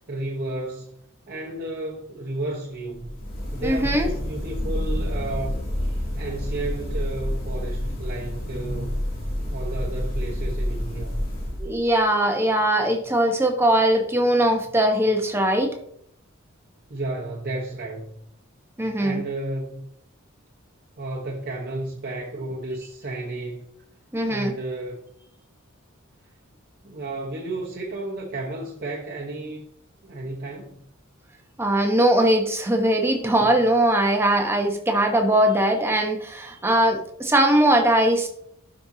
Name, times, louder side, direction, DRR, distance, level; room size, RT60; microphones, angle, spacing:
voice 1, 0.1-0.9 1.3-3.1 3.5-8.9 9.5-11.3 16.9-18.1 19.0-19.8 21.0-23.7 24.2-25.0 26.8-29.7 30.0-30.8, right 2 dB, 45° right, 1.1 m, -32 dB
sound 1, 2.9-12.0, left 1 dB, 45° left, 2.7 m, -29 dB
voice 2, 3.6-4.1 11.6-15.7 18.8-19.2 24.1-24.5 31.6-38.3, right 1 dB, 10° right, 1.1 m, -20 dB
12.0 x 5.4 x 2.8 m
head